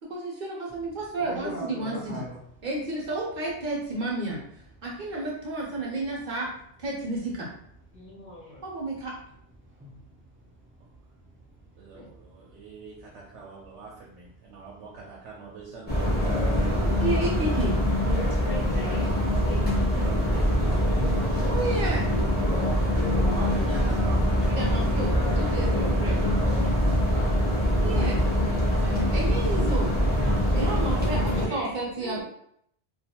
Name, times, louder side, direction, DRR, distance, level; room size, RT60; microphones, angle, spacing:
voice 1, 0.0-2.2 2.6-4.4 4.8-6.5 6.8-7.5 8.6-9.2 16.8-17.8 21.5-22.1 24.5-26.4 27.8-28.2 29.1-29.9 30.5-32.2, right 2 dB, 50° right, -3 dB, 0.8 m, -31 dB
voice 2, 1.2-2.4 8.1-8.5 9.7-12.7 19.7-19.9 20.9-21.6 22.4-24.0 25.4-26.0 28.2-29.1, equal, 20° right, -5 dB, 0.4 m, -42 dB
voice 3, 7.9-8.6 11.9-12.1 18.4-20.2 31.5-32.2, left 2 dB, 55° left, -6 dB, 0.8 m, -42 dB
voice 4, 11.8-17.6 19.9-22.1 23.3-24.5 25.0-25.5, right 4 dB, 80° right, -3 dB, 0.9 m, -43 dB
sound 1, 15.9-31.5, equal, 10° left, 0.7 m, -24 dB
2.4 x 2.3 x 2.8 m, 0.70 s
omnidirectional pair, 1.1 m